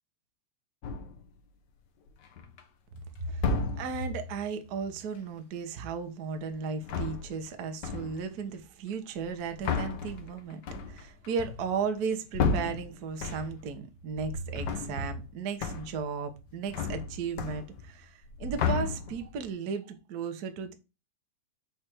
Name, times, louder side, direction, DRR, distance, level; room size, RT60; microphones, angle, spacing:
sound 1, 0.8-1.3 2.1-2.6 3.3-4.1 6.7-7.5 7.8-8.3 9.2-13.7 14.1-15.3 15.6-16.1 16.4-18.0 18.2-19.4, left 5 dB, 70° left, 1.0 m, -33 dB
voice 1, 3.2-10.6 10.9-20.7, right 5 dB, 75° right, 0.8 m, -35 dB
5.1 x 4.4 x 6.0 m
omnidirectional pair, 3.3 m